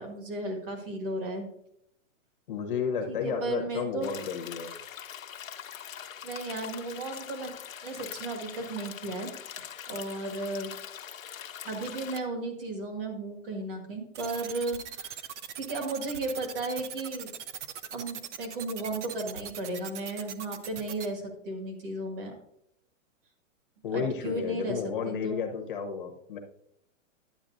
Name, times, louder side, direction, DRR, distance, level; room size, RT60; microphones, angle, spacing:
voice 1, 0.0-1.5 3.1-4.1 6.2-7.5 7.8-9.3 9.6-10.7 11.6-15.3 15.6-17.3 17.9-22.3 23.9-25.4, right 2 dB, 45° right, 4 dB, 1.8 m, -35 dB
voice 2, 2.5-4.7 23.8-26.4, left 6 dB, 40° left, 4 dB, 0.9 m, -32 dB
sound 1, 4.0-12.2, left 9 dB, 85° left, 1.0 m, -43 dB
sound 2, 14.1-21.1, right 8 dB, 65° right, 0.8 m, -40 dB
10.0 x 8.7 x 2.6 m, 0.75 s
hypercardioid pair, 175°, 39 cm